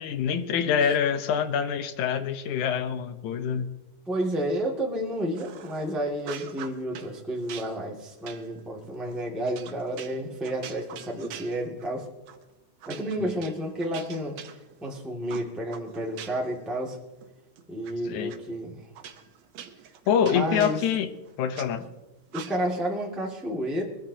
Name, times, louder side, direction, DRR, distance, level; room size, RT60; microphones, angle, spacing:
voice 1, 0.0-3.8 13.2-13.4 18.0-18.3 20.1-21.1 21.4-21.9, left 8 dB, 85° left, 10 dB, 2.3 m, -26 dB
voice 2, 4.1-12.1 12.9-14.4 14.8-17.0 17.7-18.8 20.3-20.8 22.3-23.8, right 1 dB, ahead, -2 dB, 1.4 m, -31 dB
sound 1, 5.4-5.9 6.2-7.1 7.5-12.0 12.3-12.5 12.8-14.9 15.3-16.6 16.9-17.9 18.3-18.4 19.0-21.7 22.3-22.9, right 9 dB, 70° right, 2.0 m, -44 dB
23.0 x 14.0 x 2.8 m, 1.1 s
omnidirectional pair, 3.4 m